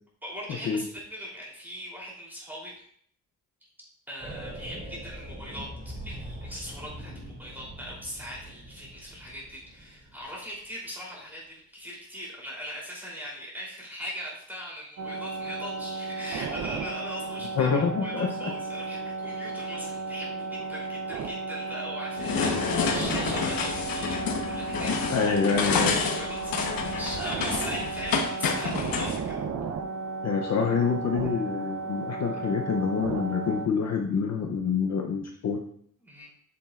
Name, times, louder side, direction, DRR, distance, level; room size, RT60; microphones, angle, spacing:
voice 1, 0.2-2.8 4.1-25.1 25.8-26.5 26.8-29.4 36.0-36.3, equal, 5° right, -5 dB, 3.1 m, -40 dB
sound 1, 4.2-10.4, right 1 dB, 25° right, 2.8 m, -42 dB
sound 2, 15.0-33.7, right 4 dB, 50° right, 0.6 m, -34 dB
voice 2, 17.6-18.5 24.8-26.0 30.2-35.6, left 5 dB, 50° left, 2 dB, 0.7 m, -27 dB
sound 3, 22.2-29.2, left 5 dB, 75° left, 1.1 m, -29 dB
8.7 x 7.1 x 2.4 m, 0.65 s
wide cardioid pair, 155°, 35 cm